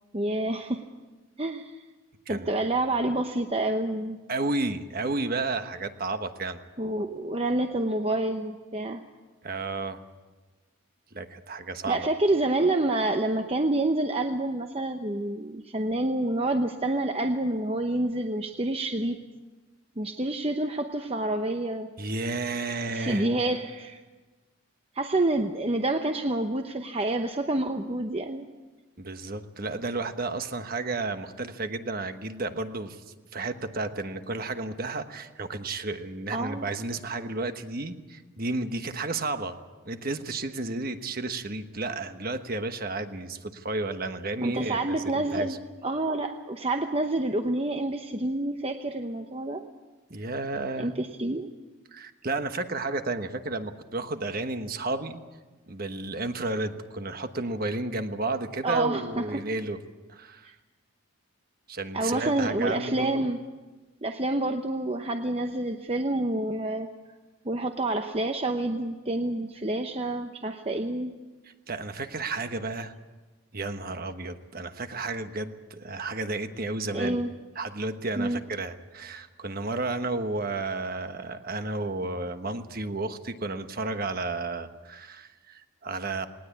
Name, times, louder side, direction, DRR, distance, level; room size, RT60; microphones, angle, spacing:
voice 1, 0.1-0.8 1.4-1.8 2.3-4.2 6.8-9.0 11.9-19.2 20.0-21.9 22.9-24.0 25.0-28.5 36.3-36.7 44.4-45.5 45.8-49.6 50.8-51.5 58.6-59.4 61.9-63.4 64.0-66.9 67.4-71.1 76.9-77.3 78.2-78.4, right 2 dB, 25° right, 5 dB, 0.8 m, -28 dB
voice 2, 2.3-2.7 4.3-6.6 9.4-10.0 11.1-12.0 22.0-23.3 29.0-33.0 33.3-39.6 39.8-45.6 50.1-50.9 51.9-55.2 55.7-59.8 60.1-60.5 61.7-63.2 71.4-72.9 73.5-77.2 77.5-86.3, right 3 dB, 45° right, 8 dB, 1.2 m, -32 dB
19.5 x 19.5 x 8.4 m, 1.2 s
head